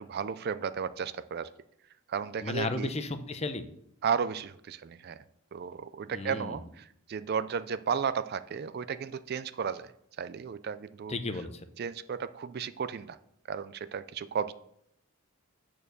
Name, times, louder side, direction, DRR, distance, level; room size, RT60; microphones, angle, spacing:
voice 1, 0.0-1.5 2.1-2.9 4.0-5.2 5.5-9.9 10.2-11.1 11.8-13.2 13.5-14.5, right 6 dB, 45° right, 14 dB, 0.4 m, -34 dB
voice 2, 2.4-3.6 6.1-6.6 11.1-11.6, left 3 dB, 30° left, 9 dB, 0.6 m, -34 dB
8.7 x 4.6 x 6.7 m, 0.73 s
head